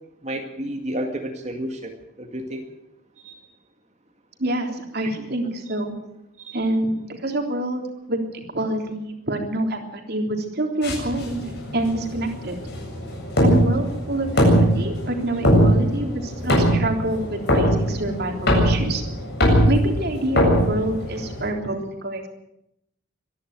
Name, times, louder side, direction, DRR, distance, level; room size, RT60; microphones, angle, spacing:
voice 1, 0.2-1.9 2.2-2.7 3.2-3.4 5.0-5.1 6.4-6.6, right 1 dB, 35° right, 4 dB, 2.0 m, -31 dB
voice 2, 4.4-6.0 6.5-11.4 11.7-12.6 13.4-19.0 19.7-22.3, right 1 dB, 50° right, 4 dB, 3.5 m, -26 dB
sound 1, 10.8-21.5, equal, 50° left, 7.8 m, -21 dB
25.0 x 11.0 x 9.4 m, 0.81 s
head